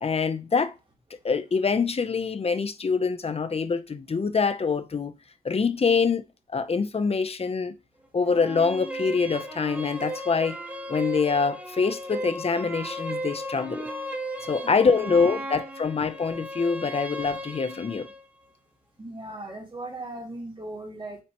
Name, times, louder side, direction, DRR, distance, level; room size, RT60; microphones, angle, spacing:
voice 1, 0.0-0.7 1.2-5.1 5.4-6.2 6.5-7.7 8.1-10.6 10.9-13.9 14.4-18.1, left 5 dB, 40° left, 0.6 m, -25 dB
sound 1, 8.3-18.2, right 1 dB, 10° right, 1.2 m, -36 dB
voice 2, 19.0-21.2, right 2 dB, 30° right, 2.8 m, -38 dB
7.5 x 4.4 x 2.9 m
wide cardioid pair, 105°, 16 cm